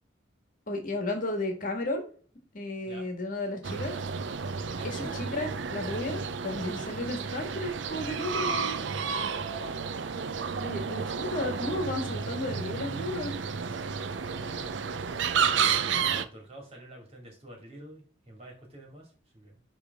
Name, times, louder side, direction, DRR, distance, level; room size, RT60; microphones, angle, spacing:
voice 1, 0.7-2.1 2.5-3.9 4.8-8.9 10.6-13.3, left 1 dB, 45° left, 3 dB, 1.6 m, -33 dB
sound 1, 3.6-16.3, right 6 dB, 65° right, 0.5 m, -31 dB
voice 2, 4.7-5.2 9.3-9.9 14.0-14.8 16.0-19.6, right 2 dB, 35° right, 0 dB, 2.4 m, -47 dB
10.0 x 3.4 x 3.5 m, 0.42 s
head